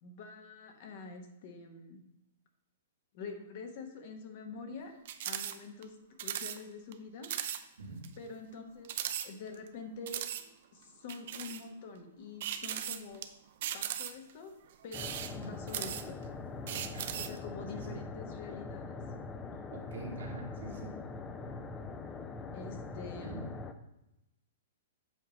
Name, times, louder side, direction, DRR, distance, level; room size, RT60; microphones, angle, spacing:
voice 1, 0.0-2.0 3.1-4.9 5.2-7.3 8.2-8.9 9.2-10.3 10.7-13.2 13.7-14.5 14.8-16.2 17.1-19.0 22.5-23.4, left 4 dB, 50° left, 4 dB, 1.2 m, -46 dB
sound 1, 5.0-5.5 5.8-5.9 6.2-6.6 6.9-7.0 7.2-7.6 8.0-8.1 8.8-9.7 10.1-10.4 11.1-11.6 12.4-13.2 13.6-14.3 14.8-16.2 16.7-17.4, right 10 dB, 60° right, 0.5 m, -37 dB
sound 2, 14.9-23.7, left 4 dB, 15° left, 0.5 m, -43 dB
voice 2, 16.7-17.2 17.9-18.0 19.7-20.9 23.2-23.4, right 3 dB, 80° right, -1 dB, 1.8 m, -44 dB
7.7 x 3.1 x 5.1 m, 0.89 s
hypercardioid pair, 140°, 0 cm